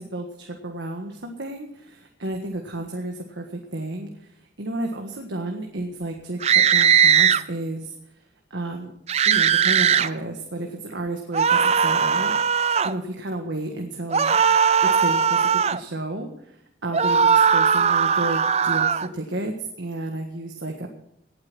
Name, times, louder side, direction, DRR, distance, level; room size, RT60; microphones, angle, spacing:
voice 1, 0.0-8.2 8.5-8.9 9.2-12.3 12.8-14.4 14.8-20.9, right 2 dB, 85° right, 3 dB, 1.6 m, -32 dB
sound 1, 6.4-7.4 9.1-10.1 11.3-12.9 14.1-15.8 16.9-19.1, right 7 dB, 35° right, 0.4 m, -19 dB
18.0 x 8.9 x 6.1 m, 0.76 s
head